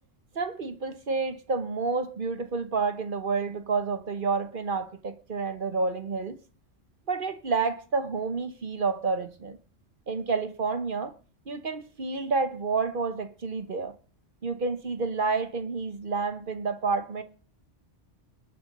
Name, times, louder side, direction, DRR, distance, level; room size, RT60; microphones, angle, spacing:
voice 1, 0.3-6.4 7.1-9.6 10.1-11.1 11.5-13.9 14.4-17.2, right 4 dB, 50° right, 1.1 m, -29 dB
20.0 x 6.9 x 5.3 m
omnidirectional pair, 1.2 m